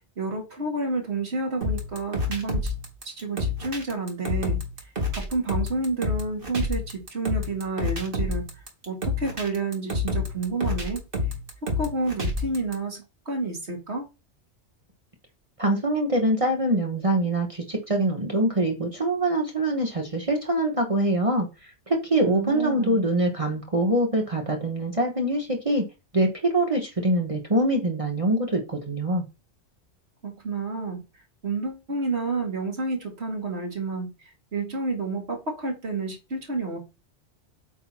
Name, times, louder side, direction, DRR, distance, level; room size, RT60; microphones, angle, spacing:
voice 1, 0.2-2.7 3.0-4.6 5.1-8.5 8.9-11.0 11.8-14.1 22.2-23.0 30.2-31.0 31.4-36.8, right 3 dB, 65° right, 1 dB, 2.5 m, -30 dB
sound 1, 1.6-12.7, left 2 dB, 50° right, 2.0 m, -29 dB
voice 2, 15.6-25.8 26.1-29.2, right 1 dB, 30° right, 1 dB, 1.2 m, -24 dB
8.4 x 2.9 x 5.8 m, 0.27 s
omnidirectional pair, 1.2 m